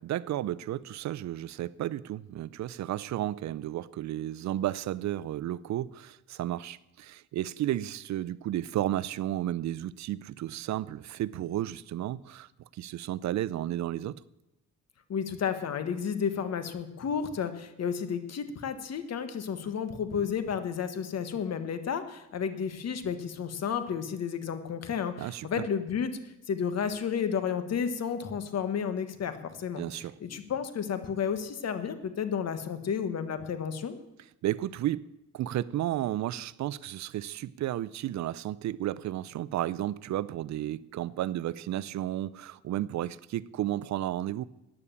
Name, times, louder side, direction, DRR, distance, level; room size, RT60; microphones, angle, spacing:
voice 1, 0.0-14.2 25.2-25.6 29.8-30.1 34.4-44.4, right 13 dB, 65° right, 0.6 m, -33 dB
voice 2, 15.1-29.8 30.2-34.0, left 7 dB, 55° left, 1.5 m, -32 dB
14.5 x 9.9 x 7.1 m
cardioid pair, 90°, 30 cm